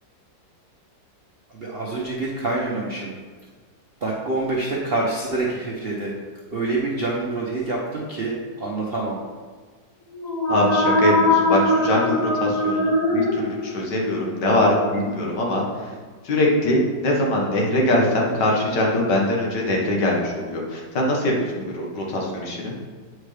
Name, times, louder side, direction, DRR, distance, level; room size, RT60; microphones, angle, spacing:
voice 1, 1.5-3.2 4.0-6.1 6.5-9.2, right 2 dB, 50° right, -4 dB, 0.7 m, -26 dB
sound 1, 10.1-14.0, left 1 dB, 20° left, 1.7 m, -21 dB
voice 2, 10.5-15.9 16.2-22.7, left 1 dB, 70° left, -2 dB, 1.8 m, -22 dB
8.9 x 4.6 x 3.3 m, 1.5 s
omnidirectional pair, 2.0 m